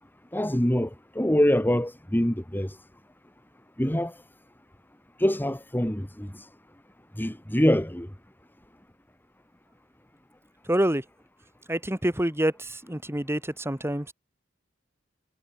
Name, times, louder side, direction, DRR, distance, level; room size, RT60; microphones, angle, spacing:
voice 1, 0.3-0.9 1.2-2.7 3.8-4.1 5.2-6.3 7.2-8.1, equal, 10° left, 2.1 m, -24 dB
voice 2, 10.7-11.0 11.7-14.1, right 1 dB, 15° right, 2.3 m, -27 dB
head